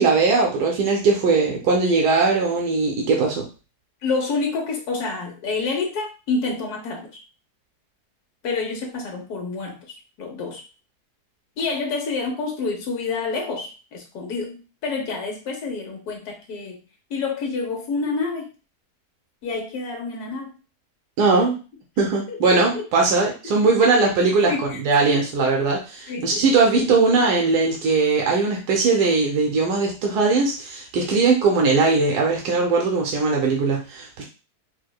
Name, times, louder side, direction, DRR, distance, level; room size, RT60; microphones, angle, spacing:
voice 1, 0.0-3.5 21.2-21.6 22.0-34.2, right 4 dB, 85° right, 0 dB, 1.3 m, -20 dB
voice 2, 4.0-7.1 8.4-10.6 11.6-16.8 17.1-18.5 19.4-20.6 22.3-22.8 23.2-23.5 23.8-23.9 24.5-25.2 26.1-26.4 26.7-26.9, left 4 dB, 75° left, 0 dB, 1.4 m, -28 dB
4.5 x 2.1 x 2.3 m, 0.33 s
omnidirectional pair, 1.7 m